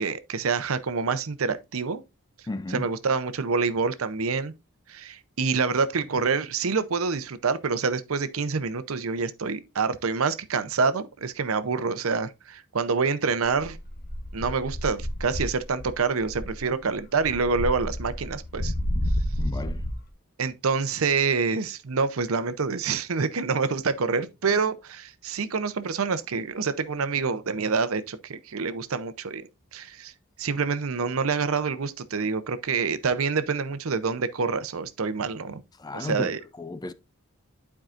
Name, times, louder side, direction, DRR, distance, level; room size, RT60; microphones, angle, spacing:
voice 1, 0.0-2.0 2.7-4.5 4.9-13.8 14.3-18.7 20.4-30.1 30.4-35.6 35.9-36.4, right 5 dB, 70° right, 0.7 m, -27 dB
voice 2, 2.5-2.9 19.3-19.8 35.8-36.3 36.6-36.9, left 2 dB, 20° left, 0.4 m, -33 dB
sound 1, 13.5-16.0 16.2-20.1, equal, 45° left, 1.1 m, -30 dB
11.5 x 4.7 x 2.5 m
head